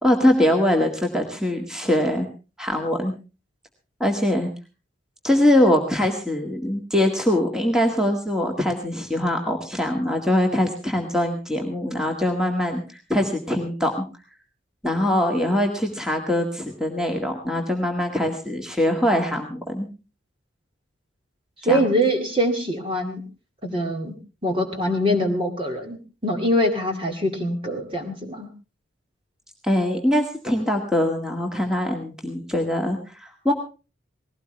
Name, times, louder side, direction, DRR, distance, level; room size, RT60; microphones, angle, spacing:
voice 1, 0.0-2.3 2.6-3.1 4.0-4.5 5.2-14.0 14.8-19.9 21.7-21.8 29.6-33.5, left 1 dB, 5° right, 2 dB, 1.9 m, -22 dB
voice 2, 21.6-23.2 23.6-24.1 24.4-26.0 26.2-28.5, equal, 25° right, 4 dB, 2.3 m, -23 dB
19.5 x 17.0 x 3.3 m, 0.32 s
head